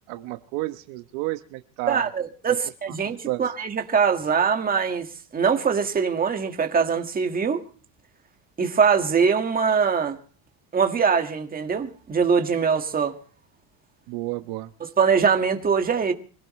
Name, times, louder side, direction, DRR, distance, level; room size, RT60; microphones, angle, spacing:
voice 1, 0.1-2.1 3.3-3.4 14.1-14.7, right 19 dB, 65° right, 1.2 m, -31 dB
voice 2, 1.9-7.6 8.6-10.2 10.7-13.1 15.0-16.1, right 6 dB, 20° right, 1.8 m, -22 dB
25.5 x 17.5 x 3.2 m
cardioid pair, 155°, 49 cm